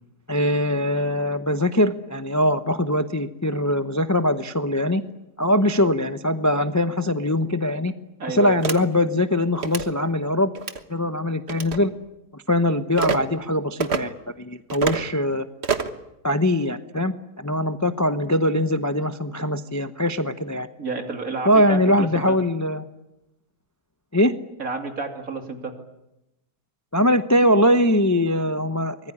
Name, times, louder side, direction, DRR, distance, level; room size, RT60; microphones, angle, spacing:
voice 1, 0.3-5.0 5.4-7.9 8.3-10.5 10.9-11.9 12.3-15.5 16.2-20.7 21.4-22.9 24.1-24.3 26.9-29.1, left 1 dB, 15° left, 9 dB, 0.6 m, -22 dB
voice 2, 8.2-8.6 20.8-22.4 24.6-25.7, right 4 dB, 60° right, 4 dB, 3.3 m, -30 dB
sound 1, 8.6-8.8 9.6-9.9 10.5-10.8 11.5-11.8 13.0-13.2 13.8-14.0 14.7-15.0 15.6-16.0, right 5 dB, 45° right, 1.5 m, -26 dB
24.0 x 20.5 x 10.0 m, 0.92 s
omnidirectional pair, 1.7 m